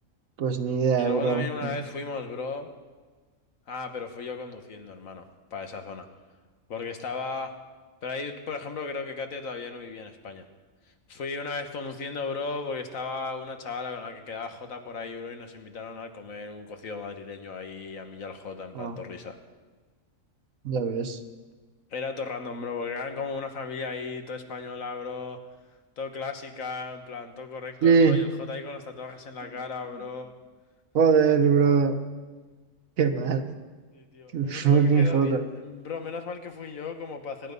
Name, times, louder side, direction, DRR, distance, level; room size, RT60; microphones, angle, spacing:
voice 1, 0.4-1.7 18.7-19.0 20.6-21.2 27.8-28.3 30.9-32.0 33.0-33.5 34.3-35.4, right 5 dB, 90° right, 8 dB, 1.5 m, -22 dB
voice 2, 1.0-2.7 3.7-6.1 6.7-7.6 8.0-10.5 11.1-19.4 21.9-25.4 26.0-30.4 33.9-37.5, left 4 dB, 80° left, 6 dB, 1.7 m, -36 dB
25.0 x 10.5 x 5.4 m, 1.4 s
omnidirectional pair, 1.4 m